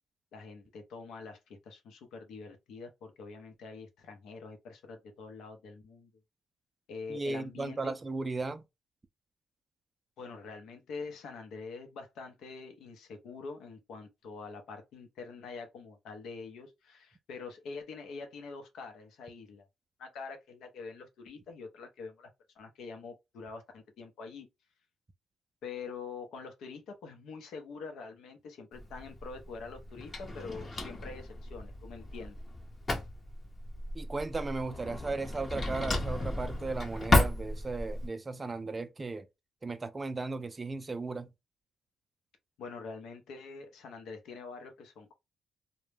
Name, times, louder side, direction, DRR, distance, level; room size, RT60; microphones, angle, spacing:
voice 1, 0.3-6.1 6.9-7.9 10.2-19.7 20.0-22.3 22.6-24.5 25.6-32.4 42.6-45.1, left 4 dB, 75° left, 0.6 m, -45 dB
voice 2, 7.1-8.6 33.9-39.3 39.6-41.3, right 3 dB, 25° right, 0.4 m, -36 dB
Drawer open or close, 28.7-38.1, left 2 dB, 30° left, 0.7 m, -33 dB
2.1 x 2.0 x 3.2 m
cardioid pair, 90°, 0 cm